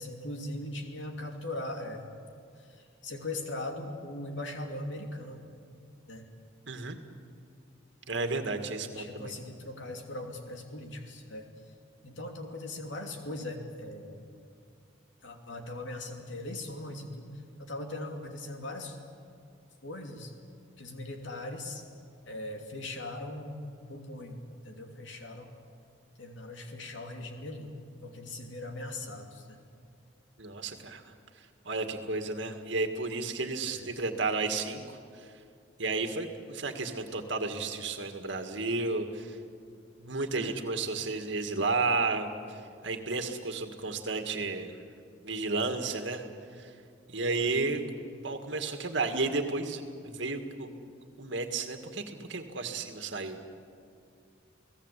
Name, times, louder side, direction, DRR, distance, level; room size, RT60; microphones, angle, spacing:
voice 1, 0.0-2.1 2.6-5.5 6.1-6.2 8.1-8.6 8.9-11.5 12.0-14.2 15.2-19.0 19.8-20.3 20.8-21.9 22.3-24.4 24.6-25.6 26.2-27.7 28.0-29.6 33.7-33.9 40.3-40.6 47.3-47.5, left 1 dB, 75° left, 3 dB, 2.9 m, -40 dB
voice 2, 8.1-9.3 30.4-31.1 31.6-35.3 35.8-39.4 40.0-44.8 45.2-46.2 46.5-46.7 47.1-47.8 48.2-50.7 51.2-53.4, right 3 dB, 65° right, 6 dB, 2.1 m, -32 dB
29.5 x 18.0 x 8.4 m, 2.3 s
head